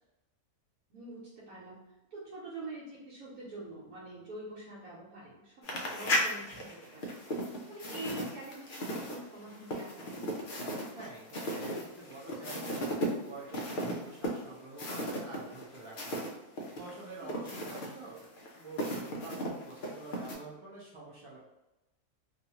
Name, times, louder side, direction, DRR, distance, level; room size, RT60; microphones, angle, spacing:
voice 1, 0.9-1.2 1.5-1.8 2.1-7.2 7.7-10.2 17.2-17.5, right 2 dB, 80° right, -7 dB, 1.2 m, -45 dB
sound 1, 5.6-16.3 16.6-20.3, equal, 80° left, 0.4 m, -36 dB
voice 2, 10.9-16.2 16.8-18.2 18.5-21.4, right 2 dB, 55° right, -6 dB, 0.3 m, -47 dB
2.6 x 2.4 x 2.8 m, 0.96 s
omnidirectional pair, 1.5 m